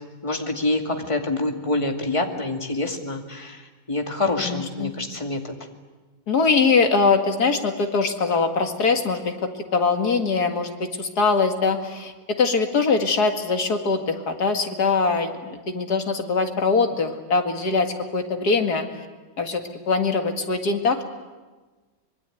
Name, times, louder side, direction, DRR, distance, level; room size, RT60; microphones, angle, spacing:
voice 1, 0.2-3.6 3.9-5.6, left 2 dB, 15° left, 3 dB, 2.3 m, -26 dB
voice 2, 4.4-4.9 6.3-9.4 9.7-18.8 19.4-19.6 19.9-21.0, left 4 dB, 55° left, 5 dB, 2.5 m, -22 dB
25.5 x 22.5 x 9.2 m, 1.3 s
omnidirectional pair, 2.0 m